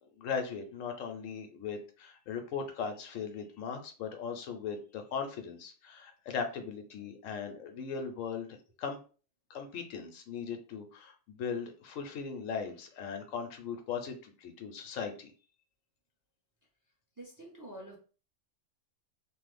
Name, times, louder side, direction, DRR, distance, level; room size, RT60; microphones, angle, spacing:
voice 1, 0.0-9.0 9.5-15.3, left 6 dB, 85° left, 6 dB, 1.0 m, -38 dB
voice 2, 17.2-18.0, right 1 dB, 20° right, -1 dB, 0.5 m, -47 dB
3.2 x 2.0 x 3.3 m, 0.37 s
omnidirectional pair, 1.3 m